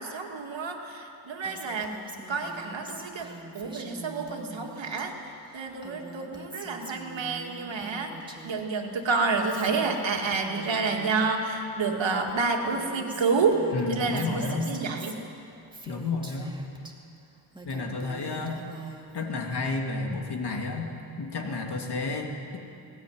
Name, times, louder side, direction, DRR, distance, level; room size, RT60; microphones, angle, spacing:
voice 1, 0.0-1.9 2.3-3.3 3.5-5.1 5.5-8.1 8.4-13.6 13.9-15.1, right 4 dB, 90° right, 2 dB, 2.5 m, -29 dB
Female speech woman speaking, 1.4-5.0 5.3-8.6 8.9-11.3 11.9-12.0 12.2-16.9 17.3-19.3, right 2 dB, 10° right, 2.4 m, -45 dB
voice 2, 13.7-14.7 15.9-16.6 17.6-18.6 19.1-20.9 21.2-22.6, left 3 dB, 60° left, 1 dB, 2.9 m, -31 dB
20.0 x 18.5 x 9.7 m, 2.7 s
wide cardioid pair, 120°, 44 cm